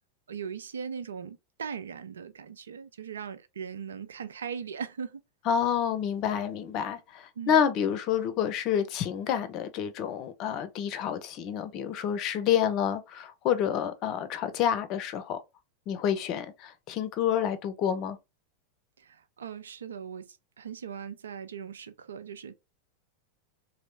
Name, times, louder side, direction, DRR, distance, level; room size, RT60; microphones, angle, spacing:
voice 1, 0.3-5.2 7.4-7.6 19.0-22.5, right 7 dB, 75° right, 0.4 m, -39 dB
voice 2, 5.5-15.4 15.9-18.2, left 9 dB, 45° left, 0.6 m, -28 dB
3.0 x 2.6 x 3.2 m
figure-of-eight pair, 90°, 0 cm